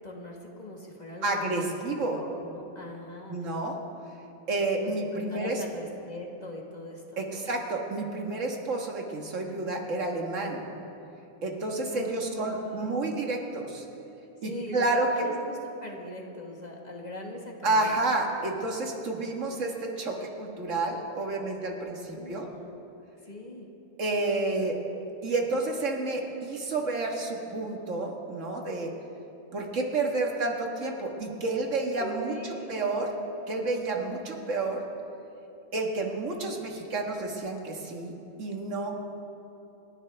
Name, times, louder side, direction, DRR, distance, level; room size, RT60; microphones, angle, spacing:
voice 1, 0.0-1.7 2.1-3.5 4.8-7.5 11.9-13.2 14.4-17.9 21.6-21.7 22.1-22.7 23.2-23.7 32.0-32.7, left 1 dB, 35° left, 0 dB, 1.6 m, -41 dB
voice 2, 1.2-2.2 3.3-3.8 4.5-5.6 7.2-10.7 11.4-13.9 14.4-15.3 17.6-21.9 22.3-22.4 24.0-24.8 25.2-28.9 29.5-32.3 32.7-33.1 33.5-34.8 35.7-38.1 38.4-39.0, right 2 dB, 80° right, 1 dB, 1.9 m, -30 dB
28.5 x 11.0 x 3.4 m, 2.9 s
omnidirectional pair, 1.3 m